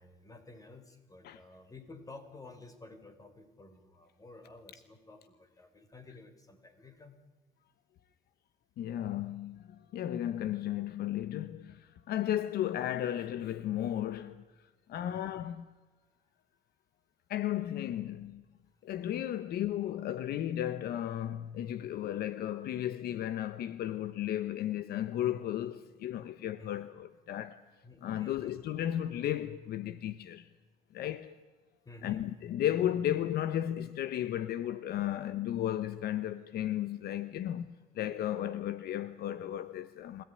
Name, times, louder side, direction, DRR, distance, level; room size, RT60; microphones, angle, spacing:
voice 1, 0.0-7.2 15.0-15.2 26.6-26.7 27.8-28.6 31.8-32.2, left 3 dB, 20° left, 4.3 m, -52 dB
voice 2, 8.8-14.4 14.9-15.7 17.3-18.4 18.8-27.6 28.0-30.5 30.9-31.3 32.0-37.7 37.9-40.2, left 11 dB, 70° left, 1.1 m, -34 dB
24.0 x 17.5 x 9.9 m
cardioid pair, 110°, 17 cm